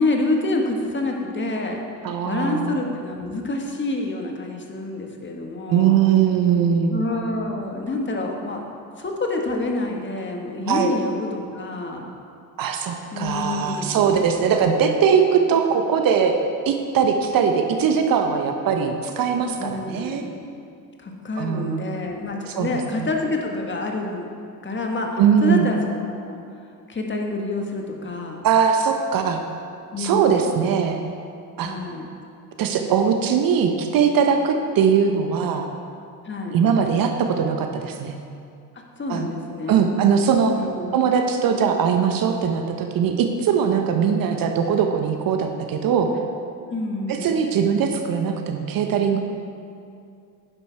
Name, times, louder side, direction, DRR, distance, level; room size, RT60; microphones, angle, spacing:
voice 1, 0.0-1.8 2.2-6.0 6.9-8.6 9.0-12.1 13.1-14.2 14.5-14.7 19.6-20.4 21.0-24.3 24.6-26.4 26.9-28.4 29.9-30.8 31.6-32.1 36.2-36.6 38.7-39.8 40.5-41.0 46.7-47.4, left 2 dB, 20° left, 1 dB, 1.6 m, -27 dB
voice 2, 2.0-2.8 5.7-6.9 10.7-10.9 12.6-16.4 16.7-20.2 21.4-21.9 22.5-22.7 23.0-23.1 25.2-25.7 28.4-29.4 30.0-31.0 31.6-31.8 32.6-35.7 36.5-38.1 39.1-39.3 39.7-40.5 40.9-46.1 47.1-49.2, right 7 dB, 45° right, 5 dB, 1.0 m, -20 dB
10.5 x 10.0 x 3.5 m, 2.4 s
hypercardioid pair, 70°, 50 cm